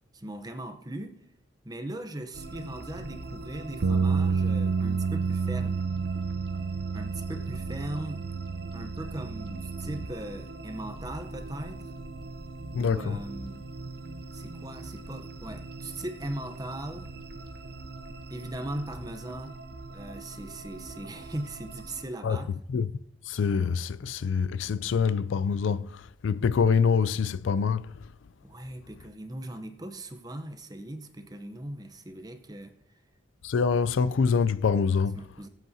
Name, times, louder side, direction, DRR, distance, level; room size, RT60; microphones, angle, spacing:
voice 1, 0.1-1.2 1.6-5.9 6.9-8.2 8.7-11.9 12.8-13.7 14.3-17.1 18.3-19.6 19.9-22.5 28.4-32.8 35.1-35.5, right 1 dB, 20° right, 0.8 m, -39 dB
sound 1, 2.3-22.0, right 2 dB, 55° right, 0.8 m, -42 dB
sound 2, 3.8-10.1, right 5 dB, 85° right, 0.5 m, -29 dB
voice 2, 12.7-13.2 22.2-22.4 22.7-22.9 23.3-25.9 26.2-27.9 33.4-35.2, left 6 dB, 80° left, 0.4 m, -25 dB
20.5 x 8.1 x 2.8 m
head